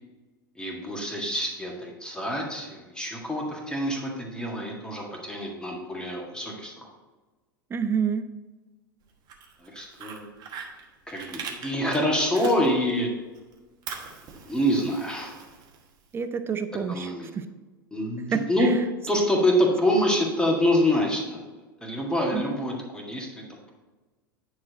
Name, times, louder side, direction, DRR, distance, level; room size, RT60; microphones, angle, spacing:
voice 1, 0.6-6.8 9.6-10.3 11.1-13.1 14.3-15.3 16.9-17.3 17.9-18.7 19.1-21.4 21.8-23.7, equal, 5° left, -1 dB, 1.8 m, -26 dB
voice 2, 7.7-8.3 16.1-17.5 18.3-18.8 22.3-22.4, right 6 dB, 20° right, 10 dB, 0.6 m, -28 dB
Fire, 9.1-13.0 13.4-16.2, right 6 dB, 35° right, 1.3 m, -42 dB
9.5 x 4.8 x 4.1 m, 1.2 s
figure-of-eight pair, 85°, 12 cm